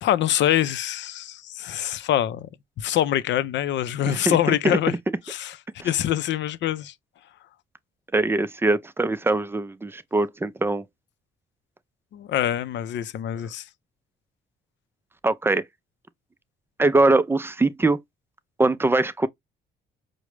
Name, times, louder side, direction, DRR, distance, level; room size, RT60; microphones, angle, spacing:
voice 1, 0.0-2.5 2.8-4.9 5.3-5.6 5.8-6.9 12.1-13.6, left 12 dB, 65° left, 0.4 m, -24 dB
voice 2, 4.1-5.0 5.8-5.9 8.1-10.8 15.2-15.6 16.8-18.0 18.6-19.3, right 2 dB, 10° right, 0.3 m, -22 dB
4.8 x 2.1 x 3.1 m
cardioid pair, 90°, 20 cm